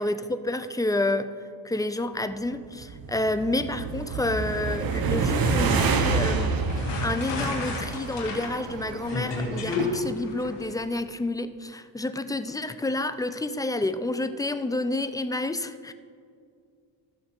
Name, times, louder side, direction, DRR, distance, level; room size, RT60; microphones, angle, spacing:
voice 1, 0.0-1.4 1.6-15.9, left 2 dB, 10° left, 11 dB, 0.3 m, -29 dB
sound 1, 2.6-8.1, right 4 dB, 50° right, 1.0 m, -27 dB
sound 2, 5.0-10.1, right 9 dB, 75° right, 0.6 m, -38 dB
sound 3, 5.3-10.7, left 4 dB, 65° left, 2.8 m, -32 dB
14.5 x 6.5 x 4.4 m, 2.2 s
cardioid pair, 100°, 46 cm